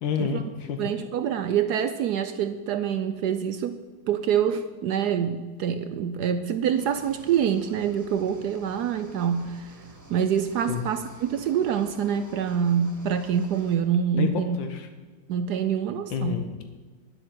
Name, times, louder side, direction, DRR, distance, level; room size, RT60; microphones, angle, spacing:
voice 1, 0.0-0.9 10.7-10.8 14.2-14.3 14.6-14.9 16.1-16.6, left 7 dB, 85° left, 7 dB, 1.6 m, -29 dB
voice 2, 0.8-3.8 4.1-9.7 10.1-14.6 15.3-16.4, right 8 dB, 70° right, 9 dB, 1.0 m, -26 dB
sound 1, 6.8-13.8, equal, 10° right, 1.3 m, -49 dB
9.7 x 7.9 x 7.7 m, 1.4 s
omnidirectional pair, 2.0 m